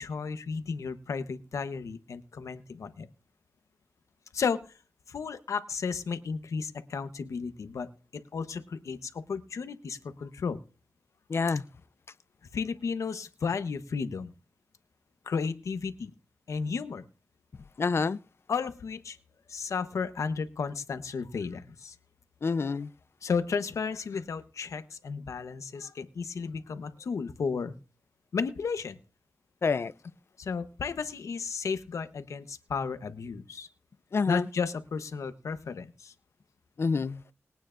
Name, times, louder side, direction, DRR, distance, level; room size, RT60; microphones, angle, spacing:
voice 1, 0.0-3.1 4.3-4.6 5.1-7.9 8.3-10.6 12.5-14.3 15.3-16.1 16.5-17.0 18.5-19.2 19.5-21.9 23.2-27.7 28.3-29.0 30.4-33.7 34.3-36.1, left 5 dB, 90° left, 0.9 m, -33 dB
voice 2, 11.3-11.6 17.8-18.2 22.4-22.9 29.6-29.9 34.1-34.5 36.8-37.2, left 4 dB, 55° left, 0.5 m, -27 dB
21.0 x 9.2 x 2.5 m
wide cardioid pair, 85°, 5 cm